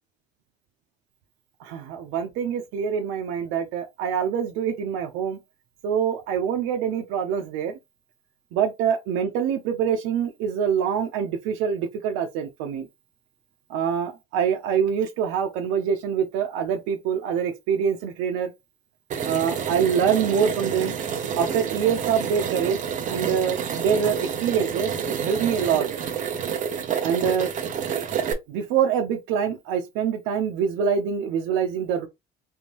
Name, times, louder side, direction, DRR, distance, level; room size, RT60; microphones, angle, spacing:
voice 1, 1.6-5.4 5.8-7.7 8.5-12.9 13.7-18.5 19.2-21.0 21.3-25.9 27.0-27.5 28.5-32.1, right 7 dB, 85° right, 0.6 m, -25 dB
sound 1, 19.1-28.3, right 7 dB, 40° right, 0.7 m, -29 dB
3.5 x 2.6 x 2.9 m
cardioid pair, 145°, 20 cm